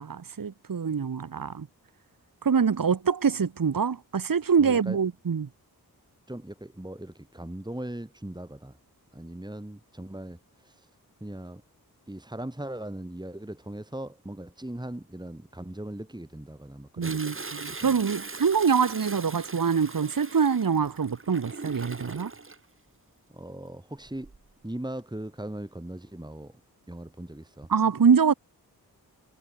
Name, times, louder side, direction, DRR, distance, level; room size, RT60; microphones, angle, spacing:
voice 1, 0.0-1.7 2.4-5.5 17.0-22.3 27.7-28.3, right 6 dB, 60° right, 1.5 m, -25 dB
voice 2, 4.6-5.0 6.3-8.8 9.1-10.9 11.2-11.6 12.1-17.4 17.8-17.9 23.3-24.3 24.6-26.5 26.9-27.7, right 1 dB, 10° right, 2.9 m, -39 dB
Toilet flush, 17.0-22.6 24.0-24.5 25.0-25.1, right 3 dB, 35° right, 1.9 m, -40 dB
cardioid pair, 50°, 38 cm